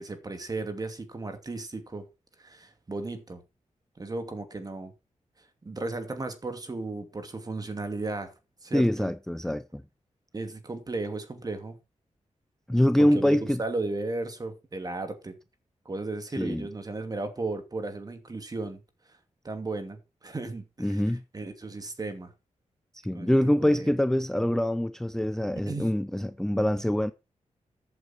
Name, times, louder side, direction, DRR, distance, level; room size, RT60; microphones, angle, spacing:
voice 1, 0.0-2.1 2.4-3.4 4.0-4.9 5.6-8.3 8.6-9.1 10.3-11.8 13.0-15.4 15.8-18.8 19.4-21.0 21.3-22.3 23.1-23.9 25.7-25.9, right 3 dB, 30° right, 2.6 m, -35 dB
voice 2, 8.7-9.8 12.7-13.6 16.4-16.7 20.8-21.2 22.9-27.1, left 1 dB, 5° left, 0.5 m, -25 dB
14.0 x 8.2 x 4.4 m
wide cardioid pair, 145°, 12 cm